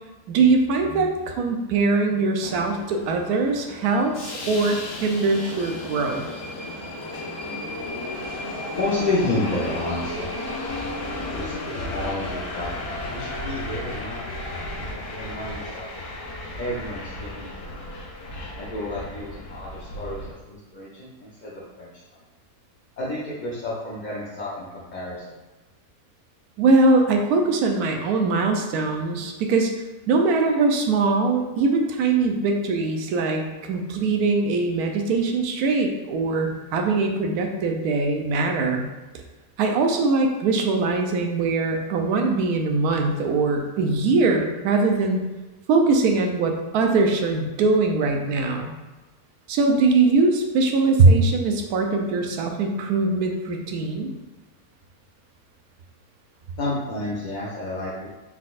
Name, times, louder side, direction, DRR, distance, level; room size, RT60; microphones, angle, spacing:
voice 1, 0.3-6.3 26.6-29.7 30.1-38.8 39.6-45.2 45.7-48.7 49.5-54.1, right 3 dB, 85° right, 3 dB, 1.1 m, -21 dB
Subway metro underground, 2.4-20.3, left 2 dB, 90° left, 1.3 m, -34 dB
voice 2, 8.7-10.3 11.2-14.3 15.1-15.9 16.6-17.9 18.6-22.2 23.0-25.2 56.6-58.1, left 2 dB, 45° left, -7 dB, 0.6 m, -30 dB
4.3 x 4.0 x 2.4 m, 1.1 s
omnidirectional pair, 1.6 m